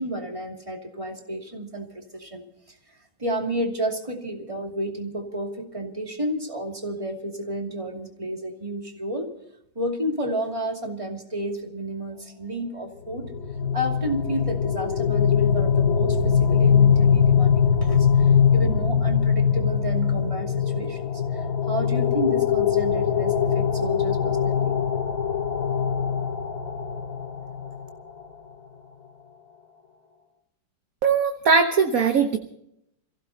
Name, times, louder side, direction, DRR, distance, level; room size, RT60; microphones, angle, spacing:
voice 1, 0.0-9.3 9.7-13.2 13.7-24.7, right 1 dB, 15° right, 2 dB, 2.5 m, -31 dB
sound 1, 13.1-27.8, left 7 dB, 60° left, 3.7 m, -22 dB
voice 2, 31.0-32.4, right 5 dB, 50° right, 5 dB, 1.3 m, -20 dB
28.5 x 16.0 x 2.9 m, 0.76 s
omnidirectional pair, 2.3 m